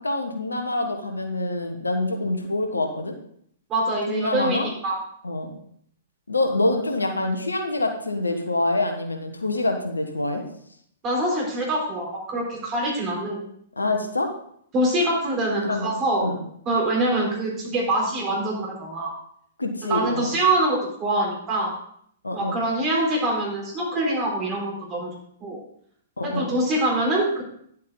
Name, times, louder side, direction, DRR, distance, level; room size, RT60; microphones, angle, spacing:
voice 1, 0.0-3.1 4.1-4.7 5.2-5.5 6.3-10.4 13.8-14.3 15.6-15.9 16.2-16.4 19.6-20.3 22.2-22.6 26.2-26.5, left 2 dB, 85° left, 5 dB, 1.4 m, -26 dB
voice 2, 3.7-5.0 11.0-13.4 14.7-16.3 16.7-19.1 19.9-21.7 22.3-25.1 25.4-25.6 26.2-27.4, right 1 dB, 25° right, -2 dB, 4.1 m, -24 dB
10.5 x 7.4 x 3.9 m, 0.67 s
figure-of-eight pair, 110°, 0 cm